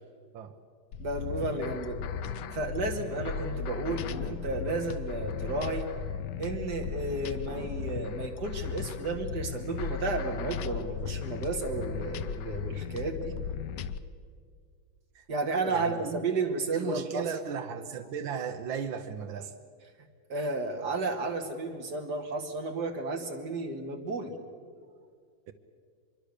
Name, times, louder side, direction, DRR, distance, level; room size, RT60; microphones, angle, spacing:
sound 1, 0.9-14.0, left 7 dB, 70° left, 1.3 m, -36 dB
voice 1, 1.0-2.0 2.5-5.9 6.4-13.4 15.3-17.3 20.3-24.3, right 3 dB, 60° right, 3 dB, 2.6 m, -32 dB
voice 2, 15.7-16.3 16.7-19.5 25.5-25.6, right 7 dB, 80° right, 6 dB, 1.7 m, -36 dB
24.5 x 22.5 x 6.7 m, 2.1 s
omnidirectional pair, 2.1 m